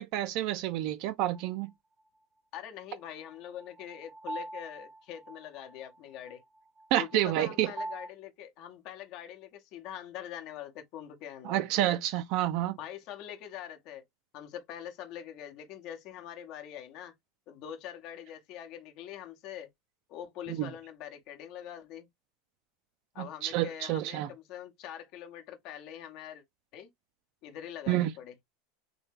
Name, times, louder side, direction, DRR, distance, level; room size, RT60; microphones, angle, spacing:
voice 1, 0.0-1.7 6.9-7.7 11.4-12.8 20.6-20.7 23.2-24.3 27.9-28.1, right 13 dB, 60° right, 0.3 m, -29 dB
sound 1, 1.3-1.4 3.3-8.1, right 2 dB, 15° right, 0.6 m, -43 dB
voice 2, 2.5-6.4 7.0-11.6 12.8-14.0 14.3-17.1 17.5-19.7 20.1-22.1 23.1-26.4 26.7-26.9 27.4-28.3, left 10 dB, 55° left, 0.7 m, -44 dB
3.3 x 2.1 x 3.3 m
hypercardioid pair, 105°, 0 cm